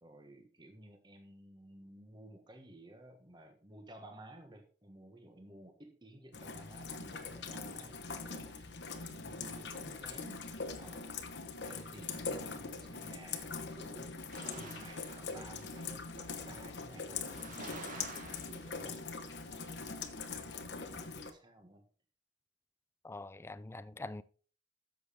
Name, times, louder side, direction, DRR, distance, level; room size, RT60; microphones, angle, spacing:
voice 1, 0.0-11.1 11.6-19.2 19.5-21.8, right 1 dB, 25° right, 1.3 m, -55 dB
Rain, 6.3-21.3, left 4 dB, 65° left, 1.1 m, -42 dB
sound 1, 14.3-16.5 17.0-19.0 19.4-20.0, right 3 dB, 45° right, 1.9 m, -51 dB
voice 2, 23.0-24.2, left 2 dB, 15° left, 0.4 m, -44 dB
11.0 x 7.3 x 3.6 m
head